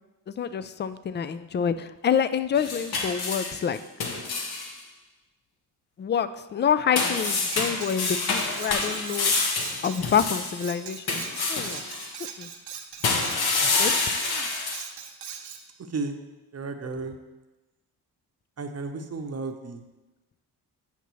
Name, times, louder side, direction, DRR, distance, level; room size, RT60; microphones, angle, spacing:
voice 1, 0.3-3.8 6.0-9.3 9.8-11.2 11.5-11.8 12.4-12.5 13.8-13.9, left 7 dB, 25° left, 14 dB, 0.3 m, -27 dB
sound 1, 2.5-4.7 6.9-10.6 11.1-12.1 13.0-14.8, left 3 dB, 60° left, 1.1 m, -27 dB
Cutlery silverware, 7.3-15.6, right 7 dB, 65° right, 0.9 m, -41 dB
voice 2, 14.1-14.7 15.3-16.2 16.5-17.2 18.6-19.8, right 3 dB, 35° right, 6 dB, 0.8 m, -35 dB
8.2 x 5.8 x 3.1 m, 1.1 s
supercardioid pair, 65°, 42 cm